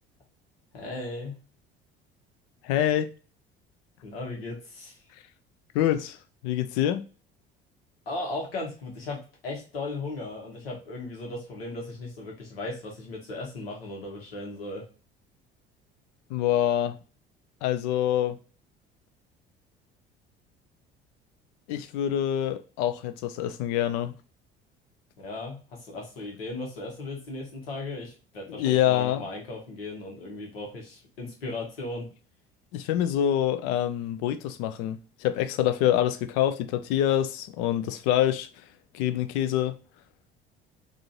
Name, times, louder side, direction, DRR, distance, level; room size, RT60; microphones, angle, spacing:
voice 1, 0.7-1.3 4.0-5.0 8.1-14.9 25.2-32.1, left 2 dB, 80° left, 1.2 m, -37 dB
voice 2, 2.6-3.1 5.7-6.2 6.4-7.0 16.3-16.9 17.6-18.4 21.7-24.2 28.5-29.3 32.7-38.5 38.9-39.7, left 11 dB, 55° left, 0.5 m, -26 dB
3.8 x 2.5 x 2.4 m
figure-of-eight pair, 60°, 29 cm